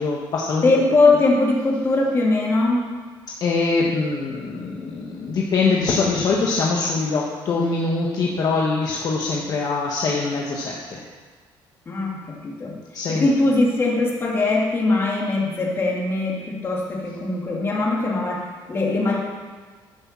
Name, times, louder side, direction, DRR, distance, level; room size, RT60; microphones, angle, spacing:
voice 1, 0.0-0.7 3.4-11.0 12.9-13.3, left 4 dB, 45° left, -2 dB, 1.3 m, -23 dB
voice 2, 0.6-2.8 11.9-12.8 13.1-19.2, left 2 dB, 30° left, -2 dB, 2.6 m, -21 dB
11.5 x 6.5 x 7.4 m, 1.5 s
cardioid pair, 150°, 9 cm